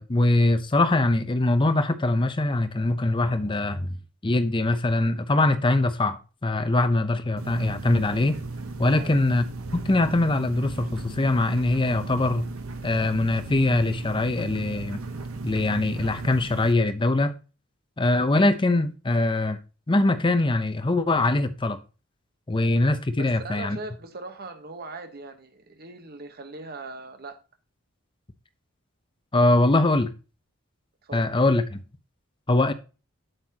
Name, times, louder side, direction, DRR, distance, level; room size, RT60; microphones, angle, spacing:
voice 1, 0.0-4.0 4.2-8.4 8.8-9.4 9.7-12.5 12.8-15.0 15.4-17.3 18.0-19.6 19.9-21.8 22.5-23.8 29.3-30.1 31.1-31.8 32.5-32.7, left 2 dB, 25° left, 0.7 m, -22 dB
sound 1, 7.4-16.7, right 3 dB, 80° right, 0.9 m, -36 dB
voice 2, 8.8-9.1 23.2-27.4 31.0-31.2, right 3 dB, 45° right, 1.1 m, -40 dB
8.1 x 7.8 x 2.9 m
head